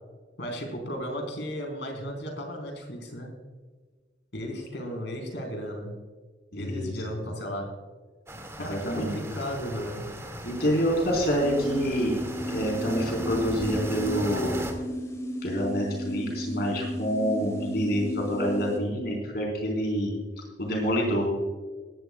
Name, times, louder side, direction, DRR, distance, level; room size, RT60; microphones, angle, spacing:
voice 1, 0.4-3.3 4.3-6.0 6.5-7.7 8.6-10.0, equal, 80° left, 2 dB, 3.9 m, -35 dB
voice 2, 6.5-7.0 8.7-9.1 10.4-12.2 12.5-14.5 15.4-20.1 20.6-21.3, equal, 65° left, 0 dB, 4.0 m, -27 dB
sound 1, 8.3-14.7, right 1 dB, 15° right, 2.0 m, -38 dB
sound 2, 11.4-18.8, equal, 20° left, 2.7 m, -35 dB
18.5 x 12.5 x 2.3 m, 1.4 s
head